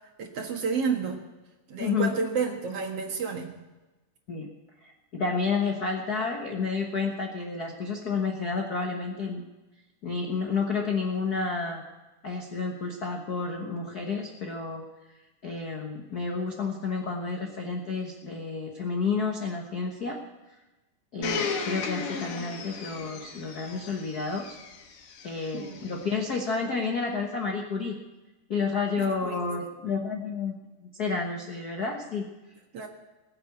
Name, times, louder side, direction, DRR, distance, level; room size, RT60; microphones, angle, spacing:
voice 1, 0.2-1.3 1.7-3.5 21.2-21.6 25.5-25.9 29.0-29.4 32.7-32.9, right 5 dB, 55° right, 2 dB, 2.4 m, -31 dB
voice 2, 1.8-2.1 4.3-4.5 4.8-9.4 10.0-11.8 12.2-14.8 15.4-20.2 21.1-24.6 25.2-28.0 28.5-30.5 30.8-32.3, left 4 dB, 55° left, 2 dB, 1.0 m, -30 dB
Domestic sounds home sounds, 21.2-26.1 26.8-26.9, left 6 dB, 90° left, 3.2 m, -35 dB
20.5 x 7.8 x 8.3 m, 1.1 s
omnidirectional pair, 3.6 m